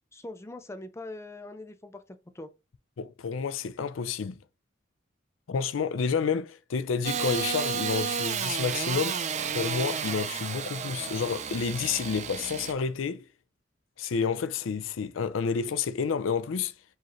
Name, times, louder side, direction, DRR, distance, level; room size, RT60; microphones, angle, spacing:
voice 1, 0.1-2.5, left 2 dB, 15° left, 0.5 m, -42 dB
voice 2, 3.0-4.4 5.5-9.2 9.5-13.2 14.0-16.7, left 5 dB, 80° left, 0.4 m, -29 dB
Engine starting / Sawing, 7.0-12.7, right 6 dB, 35° right, 0.5 m, -32 dB
4.7 x 3.1 x 2.9 m
head